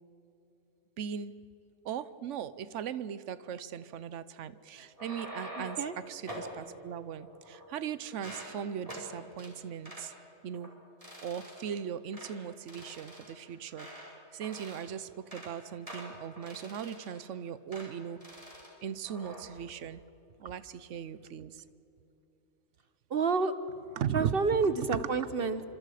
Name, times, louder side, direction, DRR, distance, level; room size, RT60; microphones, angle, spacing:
voice 1, 1.0-1.3 1.8-5.8 6.1-10.1 10.4-10.7 11.2-18.4 18.8-20.0 20.4-21.6 24.0-24.3 24.9-25.0, right 8 dB, 80° right, 15 dB, 1.1 m, -38 dB
sound 1, 4.8-5.9 6.3-6.5 7.2-7.8 8.1-8.5 8.9-9.1 9.4-9.5 9.8-10.1 10.5-10.7 11.0-11.8 12.1-12.3 12.7-14.1 14.4-14.9 15.2-15.5 15.9-17.3 17.7-17.9 18.2-18.7 19.0-19.4, equal, 30° right, 5.0 m, -46 dB
voice 2, 5.5-6.0 23.1-23.5 24.1-25.6, right 4 dB, 55° right, 11 dB, 1.1 m, -29 dB
27.0 x 26.0 x 4.9 m, 3.0 s
omnidirectional pair, 1.2 m